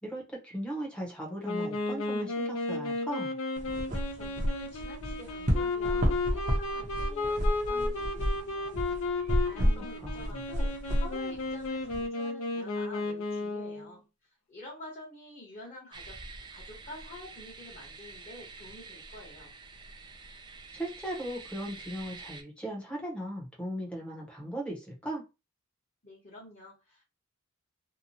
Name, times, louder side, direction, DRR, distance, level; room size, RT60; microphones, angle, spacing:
voice 1, 0.0-3.3 9.6-10.4 20.7-25.2, right 1 dB, 5° left, -2 dB, 0.8 m, -38 dB
Wind instrument woodwind instrument, 1.4-13.9, left 2 dB, 75° left, 0.6 m, -34 dB
sound 1, 3.6-12.0, equal, 35° right, 0.7 m, -31 dB
voice 2, 4.1-8.7 9.1-14.0 14.5-16.2 16.5-19.5 26.0-27.0, left 2 dB, 35° left, -4 dB, 1.1 m, -48 dB
sound 2, 15.9-22.4, right 4 dB, 20° right, 0.3 m, -47 dB
2.8 x 2.2 x 2.7 m, 0.27 s
head